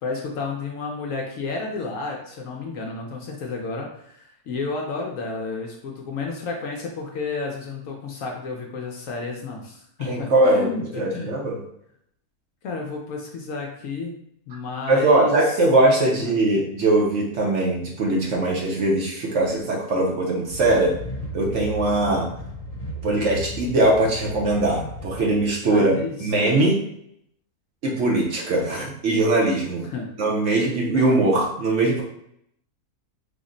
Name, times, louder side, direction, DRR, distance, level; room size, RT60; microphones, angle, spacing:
voice 1, 0.0-11.3 12.6-14.1 14.5-15.6 16.1-16.4 25.7-26.2 29.9-30.1 30.9-31.1, left 4 dB, 70° left, 0 dB, 0.9 m, -31 dB
voice 2, 10.0-11.6 14.9-20.9 21.3-22.3 23.0-25.9 26.2-26.8 27.8-29.9 30.2-32.0, right 2 dB, 60° right, -2 dB, 0.9 m, -21 dB
sound 1, 20.5-25.5, equal, 30° left, 0.8 m, -35 dB
3.5 x 2.0 x 3.8 m, 0.73 s
omnidirectional pair, 1.7 m